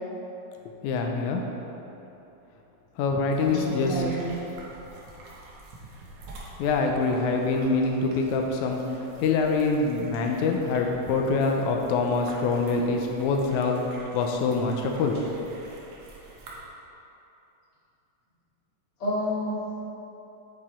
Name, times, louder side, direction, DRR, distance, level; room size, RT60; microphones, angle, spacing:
voice 1, 0.7-1.4 3.0-4.0 6.6-8.8 9.2-13.8 14.1-15.2, left 4 dB, 85° left, 2 dB, 2.0 m, -25 dB
sound 1, 3.3-16.6, right 2 dB, 70° right, 2.3 m, -47 dB
voice 2, 3.4-4.4 19.0-19.8, equal, 50° left, -8 dB, 2.8 m, -29 dB
10.0 x 4.9 x 4.3 m, 3.0 s
omnidirectional pair, 3.4 m